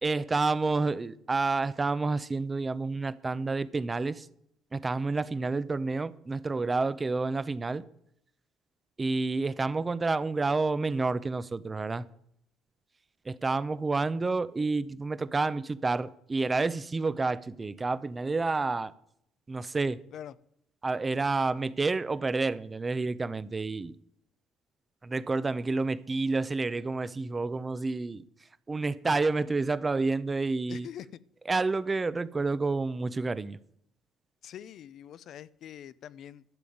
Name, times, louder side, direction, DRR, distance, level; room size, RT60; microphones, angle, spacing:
voice 1, 0.0-4.3 4.7-7.8 9.0-12.1 13.3-18.9 19.5-20.0 20.8-24.0 25.0-28.2 28.7-30.9 31.5-33.6, right 3 dB, 20° right, 0.7 m, -29 dB
voice 2, 30.7-31.2 34.4-36.4, left 10 dB, 60° left, 0.6 m, -44 dB
12.0 x 7.0 x 9.3 m
cardioid pair, 115°, 0 cm